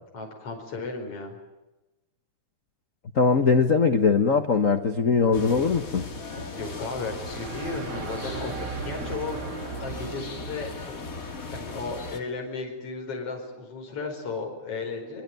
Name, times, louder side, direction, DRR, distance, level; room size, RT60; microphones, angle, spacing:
voice 1, 0.1-1.4 6.5-11.2 11.5-15.2, left 3 dB, 50° left, 2 dB, 5.8 m, -35 dB
voice 2, 3.1-6.1, left 5 dB, 85° left, 8 dB, 0.7 m, -21 dB
sound 1, 5.3-12.2, left 3 dB, 30° left, 2.4 m, -38 dB
sound 2, 7.1-10.9, right 6 dB, 70° right, 3.9 m, -37 dB
24.0 x 23.5 x 9.2 m, 1.0 s
omnidirectional pair, 3.4 m